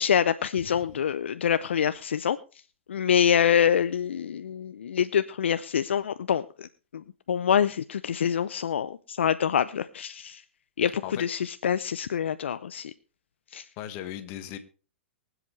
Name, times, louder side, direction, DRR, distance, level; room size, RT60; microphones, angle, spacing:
voice 1, 0.0-2.4 2.9-10.4 10.8-12.9 13.5-13.7, left 8 dB, 70° left, 13 dB, 0.5 m, -26 dB
voice 2, 13.8-14.6, left 11 dB, 40° left, 9 dB, 1.6 m, -37 dB
24.0 x 8.0 x 3.3 m, 0.36 s
figure-of-eight pair, 110°, 6 cm